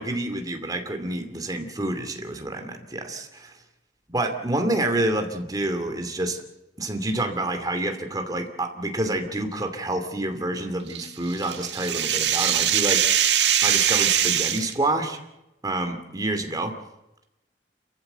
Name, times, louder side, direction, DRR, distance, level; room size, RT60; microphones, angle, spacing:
voice 1, 0.0-3.6 4.1-6.4 6.8-13.2 13.6-15.2 15.6-16.7, right 2 dB, 20° right, 5 dB, 2.6 m, -28 dB
sound 1, 10.9-14.7, right 10 dB, 80° right, 1.7 m, -22 dB
28.5 x 14.5 x 8.1 m, 0.93 s
head